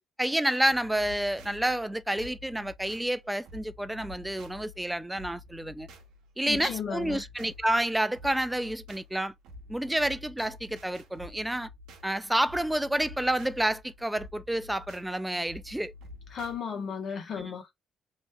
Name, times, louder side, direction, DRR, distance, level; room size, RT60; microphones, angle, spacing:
voice 1, 0.2-5.9 6.4-9.3 9.7-11.7 12.0-15.9 17.4-17.5, right 1 dB, 5° right, 0.3 m, -29 dB
sound 1, 0.7-16.6, left 2 dB, 90° right, 0.8 m, -49 dB
voice 2, 6.4-7.2 16.3-17.7, left 6 dB, 60° left, 1.1 m, -34 dB
3.0 x 3.0 x 2.3 m
cardioid pair, 90°, 0 cm